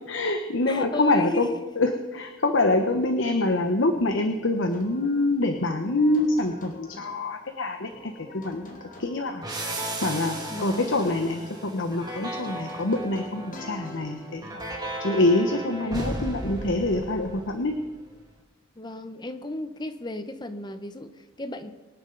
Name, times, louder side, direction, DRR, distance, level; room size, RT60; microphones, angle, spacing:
voice 1, 0.1-1.5 1.8-9.5 9.7-14.6 15.0-17.8, left 2 dB, 65° left, 5 dB, 1.0 m, -25 dB
voice 2, 0.7-1.7 10.5-11.2 15.8-16.4 18.8-21.7, left 1 dB, 20° left, 8 dB, 0.8 m, -34 dB
sound 1, 4.7-7.2 7.8-9.5 9.9-11.6 12.0-14.8, left 1 dB, 40° left, 2.2 m, -46 dB
sound 2, 9.4-17.9, right 1 dB, 20° right, 2.0 m, -35 dB
24.5 x 10.0 x 3.9 m, 1.2 s
head